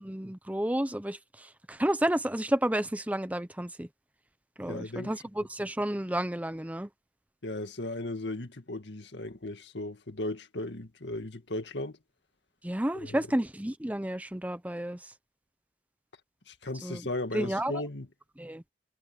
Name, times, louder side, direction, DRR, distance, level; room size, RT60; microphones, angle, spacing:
voice 1, 0.0-3.9 4.6-6.9 12.6-15.1 16.8-17.0 17.3-17.8 18.4-18.6, right 1 dB, 10° right, 0.7 m, -31 dB
voice 2, 4.7-5.1 7.4-12.0 12.9-13.2 16.5-18.1, left 2 dB, 70° left, 2.1 m, -36 dB
head